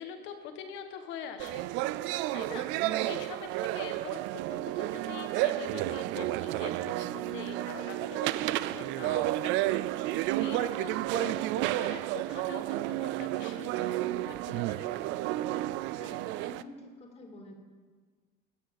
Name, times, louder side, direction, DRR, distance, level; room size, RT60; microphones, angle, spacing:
voice 1, 0.0-1.7 2.3-15.0, left 7 dB, 75° left, 6 dB, 1.4 m, -44 dB
sound 1, 1.4-16.6, right 16 dB, 80° right, 0.4 m, -31 dB
voice 2, 16.0-17.5, left 1 dB, 35° left, 2 dB, 2.1 m, -48 dB
11.5 x 6.4 x 8.3 m, 1.5 s
cardioid pair, 135°, 19 cm